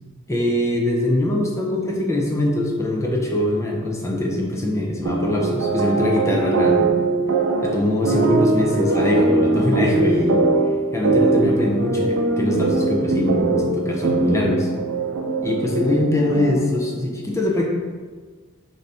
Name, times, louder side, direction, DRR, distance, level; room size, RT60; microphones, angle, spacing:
voice 1, 0.3-6.9 7.6-10.4 10.9-14.7 15.4-17.6, left 1 dB, 15° left, -2 dB, 0.6 m, -22 dB
sound 1, 5.1-16.8, right 3 dB, 75° right, 0.5 m, -21 dB
3.9 x 2.7 x 3.3 m, 1.5 s
head